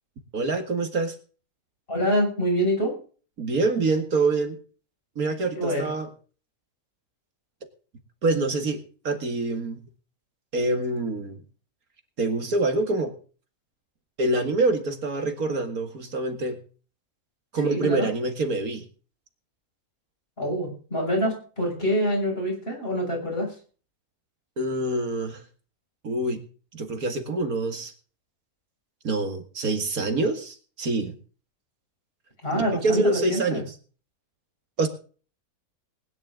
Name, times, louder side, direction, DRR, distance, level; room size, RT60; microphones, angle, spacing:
voice 1, 0.3-1.2 3.4-4.6 5.2-6.1 8.2-9.8 10.5-11.4 12.2-13.1 14.2-16.6 17.5-18.8 24.6-25.4 26.0-26.4 26.7-27.9 29.0-31.1 32.5-33.6 34.8-34.9, right 2 dB, 70° right, 7 dB, 2.4 m, -26 dB
voice 2, 1.9-2.9 5.5-5.9 17.6-18.1 20.4-23.5 32.4-33.6, equal, 40° left, 0 dB, 6.8 m, -26 dB
20.0 x 10.5 x 3.8 m, 0.39 s
omnidirectional pair, 1.6 m